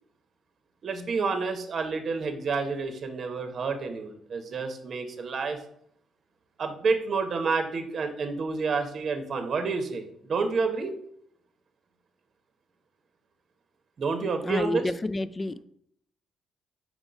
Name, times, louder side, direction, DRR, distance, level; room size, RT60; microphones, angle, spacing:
voice 1, 0.8-5.6 6.6-11.0 14.0-14.9, right 4 dB, 50° right, 7 dB, 0.8 m, -29 dB
voice 2, 14.4-15.6, left 2 dB, 25° left, 15 dB, 0.3 m, -29 dB
5.0 x 3.9 x 4.9 m, 0.69 s
cardioid pair, 90°, 0 cm